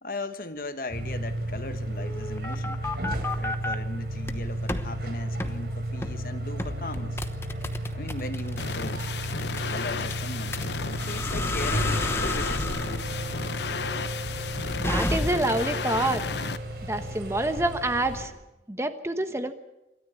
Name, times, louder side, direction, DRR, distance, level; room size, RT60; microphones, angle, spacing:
voice 1, 0.0-2.8 3.4-7.2 7.9-9.0 9.7-10.6 10.9-12.7, left 2 dB, 50° left, 1.3 m, -38 dB
sound 1, 0.9-18.2, right 1 dB, 65° right, 3.8 m, -33 dB
sound 2, 2.0-3.8 4.2-4.9 5.4-5.6 6.0-6.2 6.6-15.6, left 1 dB, 15° left, 0.9 m, -32 dB
sound 3, 8.6-16.6, left 5 dB, 75° left, 0.8 m, -33 dB
voice 2, 14.8-16.2 16.8-18.3 18.7-19.5, right 1 dB, 15° right, 1.1 m, -27 dB
27.0 x 13.5 x 8.4 m
head